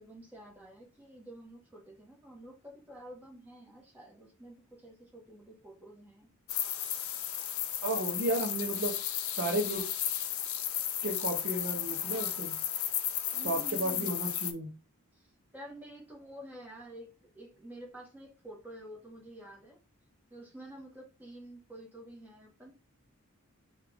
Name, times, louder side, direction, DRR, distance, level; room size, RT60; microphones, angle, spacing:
voice 1, 0.0-6.3 13.3-14.1 15.1-15.3 15.5-19.8 20.3-22.8, right 1 dB, 10° right, -2 dB, 1.3 m, -49 dB
sound 1, 6.5-14.5, left 10 dB, 70° left, 0.5 m, -34 dB
voice 2, 7.8-9.0 9.4-9.8 11.0-12.6 13.4-14.7, right 1 dB, 55° right, 2 dB, 0.8 m, -33 dB
4.7 x 2.4 x 3.4 m, 0.30 s
head